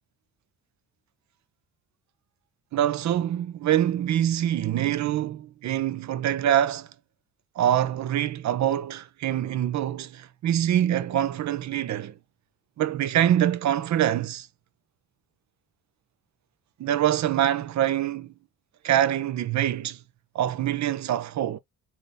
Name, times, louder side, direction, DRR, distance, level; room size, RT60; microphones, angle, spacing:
voice 1, 2.7-6.9 7.6-12.1 12.8-14.5 16.8-18.3 18.8-20.0 20.3-21.6, right 11 dB, 55° right, 0.6 m, -25 dB
3.8 x 2.8 x 3.2 m
cardioid pair, 100°, 35 cm